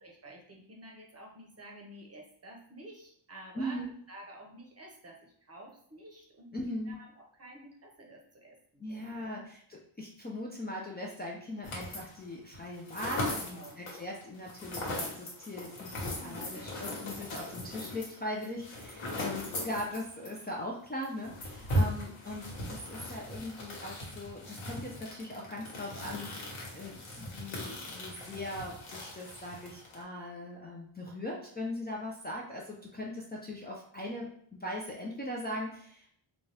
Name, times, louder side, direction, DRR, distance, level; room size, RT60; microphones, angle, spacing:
voice 1, 0.0-9.4 13.3-13.8 16.2-16.7 19.0-19.6, right 1 dB, 30° right, 0 dB, 0.8 m, -51 dB
voice 2, 3.6-3.9 6.5-6.9 8.8-36.1, left 1 dB, 20° left, -2 dB, 0.5 m, -40 dB
sound 1, 11.6-12.2 12.5-20.4 20.6-20.7 21.0-30.0, left 1 dB, 85° left, 1.3 m, -38 dB
4.0 x 2.4 x 3.3 m, 0.64 s
wide cardioid pair, 145°, 49 cm